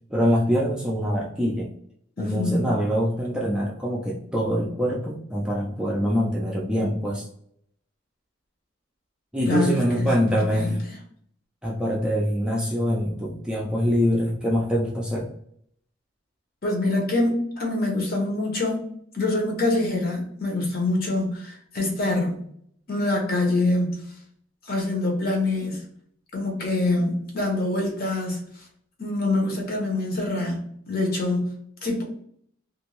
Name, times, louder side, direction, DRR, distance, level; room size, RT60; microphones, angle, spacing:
voice 1, 0.1-1.7 2.2-7.3 9.3-10.8 11.6-15.3, equal, 5° right, -4 dB, 0.4 m, -24 dB
voice 2, 2.2-2.8 9.5-11.0 16.6-22.4 22.9-24.0 24.6-25.8 26.3-28.7 29.0-31.6 31.8-32.0, left 2 dB, 50° left, 0 dB, 0.8 m, -25 dB
2.5 x 2.2 x 3.0 m, 0.67 s
head